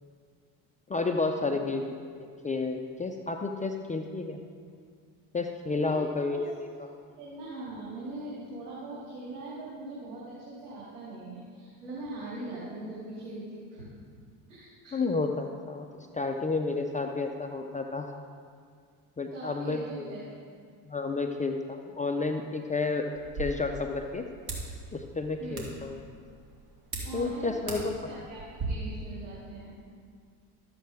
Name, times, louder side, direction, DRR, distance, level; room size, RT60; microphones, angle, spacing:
voice 1, 0.9-4.4 5.3-6.9 14.9-15.9 16.1-18.1 19.2-20.1 20.9-23.0 23.4-24.2 24.9-26.0 27.1-27.9, left 3 dB, 15° left, 4 dB, 0.5 m, -31 dB
voice 2, 7.2-13.9 14.5-14.9 19.3-20.2 25.4-25.7 27.0-29.7, right 2 dB, 90° right, -8 dB, 2.5 m, -41 dB
sound 1, 23.1-28.7, right 3 dB, 45° right, 2.6 m, -41 dB
13.0 x 7.7 x 3.5 m, 2.1 s
hypercardioid pair, 80°, 50 cm